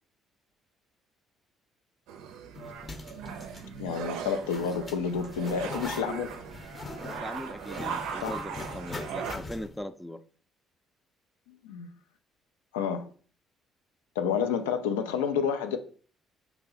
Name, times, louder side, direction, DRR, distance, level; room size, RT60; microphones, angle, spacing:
sound 1, 2.1-9.3, right 7 dB, 75° right, 0.4 m, -39 dB
Zipper (clothing), 2.5-9.8, left 2 dB, 35° left, 0.7 m, -42 dB
voice 1, 3.8-6.4 8.2-8.4 11.6-11.9 12.7-13.1 14.2-15.8, left 6 dB, 85° left, 0.4 m, -29 dB
voice 2, 7.0-10.2, left 1 dB, 5° left, 0.4 m, -40 dB
2.8 x 2.7 x 3.9 m
hypercardioid pair, 55°, 0 cm